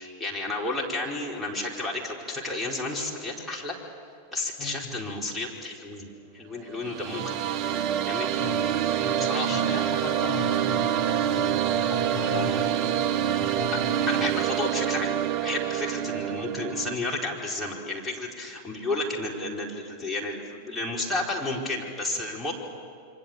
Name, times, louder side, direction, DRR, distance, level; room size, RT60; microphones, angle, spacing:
voice 1, 0.0-3.7 4.3-6.1 6.3-7.3 8.1-8.4 9.2-9.6 14.1-15.1 15.4-22.5, left 2 dB, 5° left, -3 dB, 4.8 m, -32 dB
voice 2, 4.6-4.9 7.2-7.5 8.4-8.6 9.0-13.0 13.4-14.2, left 7 dB, 40° left, 1 dB, 6.0 m, -38 dB
sound 1, 6.7-16.9, right 10 dB, 40° right, 0.6 m, -26 dB
28.0 x 24.5 x 8.3 m, 2.2 s
figure-of-eight pair, 90°, 0 cm